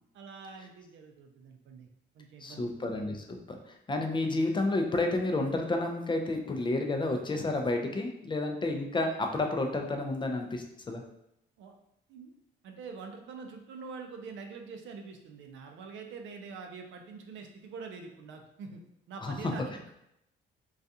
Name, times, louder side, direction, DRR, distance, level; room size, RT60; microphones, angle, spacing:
voice 1, 0.1-1.9 2.1-2.7 11.6-11.7 12.1-12.3 12.6-18.8 19.1-19.7, right 5 dB, 75° right, 3 dB, 0.5 m, -45 dB
voice 2, 2.4-11.0 19.2-19.5, left 2 dB, 25° left, 3 dB, 0.4 m, -31 dB
2.4 x 2.3 x 2.6 m, 0.80 s
cardioid pair, 90°, 20 cm